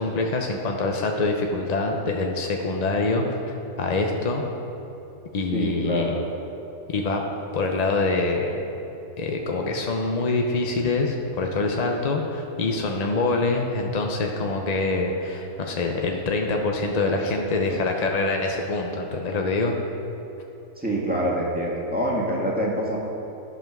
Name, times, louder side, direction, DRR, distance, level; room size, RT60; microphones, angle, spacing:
voice 1, 0.0-4.4 5.3-6.2 6.9-7.2 7.5-8.5 9.2-19.7, left 3 dB, 55° left, 2 dB, 0.4 m, -25 dB
voice 2, 5.5-6.1 20.8-23.0, right 1 dB, 5° right, -5 dB, 1.5 m, -25 dB
12.0 x 5.6 x 6.0 m, 3.0 s
omnidirectional pair, 1.7 m